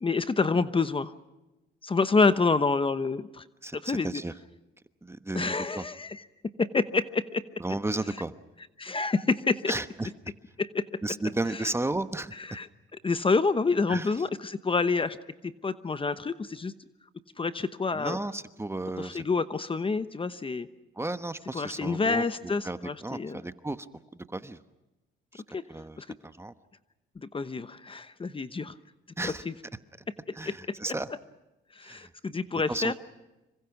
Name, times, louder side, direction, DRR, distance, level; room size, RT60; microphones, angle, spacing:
voice 1, 0.0-1.1 1.8-3.4 3.7-4.2 5.3-6.2 6.6-7.4 8.8-9.7 10.6-10.8 12.4-12.7 13.0-15.2 15.4-16.7 17.4-18.2 19.0-20.7 21.5-23.4 25.5-25.6 26.0-26.1 27.2-28.7 29.2-29.5 30.4-30.6 30.9-31.0 31.8-33.0, left 4 dB, 25° left, 13 dB, 1.0 m, -28 dB
voice 2, 3.6-4.3 5.0-5.8 7.6-8.3 9.7-10.1 11.0-12.3 13.9-14.1 17.9-19.2 21.0-22.2 22.6-23.8 24.1-24.6 25.3-25.4 25.7-26.0 26.2-26.5 29.2-29.4 30.3-31.1 31.8-32.1 32.7-33.0, right 2 dB, 15° right, 11 dB, 1.1 m, -33 dB
26.5 x 24.5 x 6.0 m, 1.0 s
cardioid pair, 90°, 20 cm